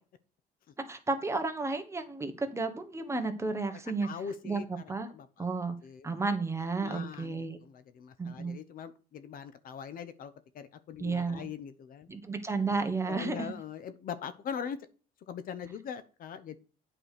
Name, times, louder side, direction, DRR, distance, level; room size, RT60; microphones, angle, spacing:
voice 1, 0.8-4.1 4.4-4.6 4.9-5.1 5.4-5.7 6.0-7.6 8.2-8.5 11.0-11.5 12.1-13.6, right 3 dB, 15° right, 6 dB, 1.4 m, -32 dB
voice 2, 4.0-4.6 5.1-5.3 5.8-6.1 6.8-12.1 13.1-14.8 15.3-16.6, left 7 dB, 55° left, 12 dB, 0.9 m, -41 dB
8.8 x 4.9 x 6.6 m, 0.36 s
cardioid pair, 110°, 17 cm